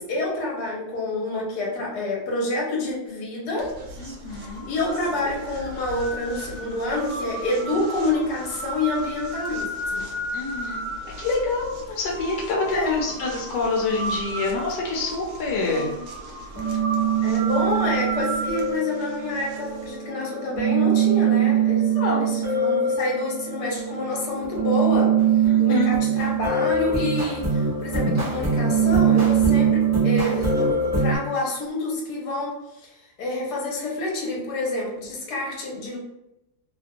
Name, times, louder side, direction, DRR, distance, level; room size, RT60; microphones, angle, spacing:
voice 1, 0.0-3.8 4.7-10.1 12.7-13.1 15.6-16.0 17.2-25.2 25.6-32.9 33.2-36.0, left 2 dB, 70° left, -2 dB, 1.5 m, -28 dB
sound 1, 3.6-20.0, right 1 dB, 70° right, 1.0 m, -34 dB
voice 2, 4.0-4.7 10.3-10.9 11.2-15.9 22.0-22.3 25.5-26.0, left 3 dB, 90° left, -2 dB, 1.3 m, -27 dB
sound 2, 16.5-31.2, right 6 dB, 10° right, 1.0 m, -22 dB
3.1 x 2.5 x 2.7 m, 0.89 s
omnidirectional pair, 1.8 m